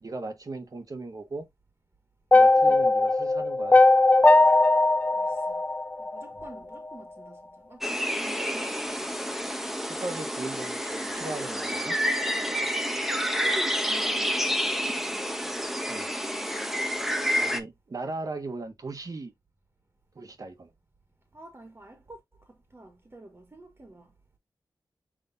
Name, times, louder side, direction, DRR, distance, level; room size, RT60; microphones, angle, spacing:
voice 1, 0.0-1.5 2.3-3.8 9.9-12.0 15.9-16.1 17.4-19.3 20.1-20.7, right 3 dB, 50° right, 1.2 m, -37 dB
sound 1, 2.3-6.5, left 2 dB, 20° left, 0.3 m, -19 dB
voice 2, 5.1-5.6 6.0-9.2 13.1-15.4 16.1-17.3 21.3-22.2 22.5-24.1, right 2 dB, 30° right, 1.4 m, -47 dB
sound 2, 7.8-17.6, equal, 5° right, 1.0 m, -29 dB
5.9 x 3.1 x 2.7 m
cardioid pair, 50°, 8 cm